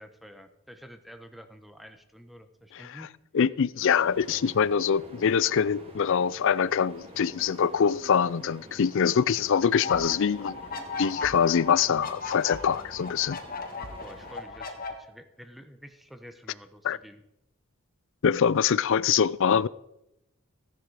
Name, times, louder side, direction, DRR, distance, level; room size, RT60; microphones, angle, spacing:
voice 1, 0.0-3.1 14.0-17.2, equal, ahead, 1.0 m, -49 dB
voice 2, 3.3-10.6 11.0-13.4 16.8-17.0 18.2-19.7, left 7 dB, 60° left, 0.4 m, -24 dB
sound 1, 4.0-14.4, right 1 dB, 25° right, 2.2 m, -48 dB
sound 2, 9.7-14.9, left 4 dB, 40° left, 1.7 m, -37 dB
15.5 x 10.5 x 4.9 m
head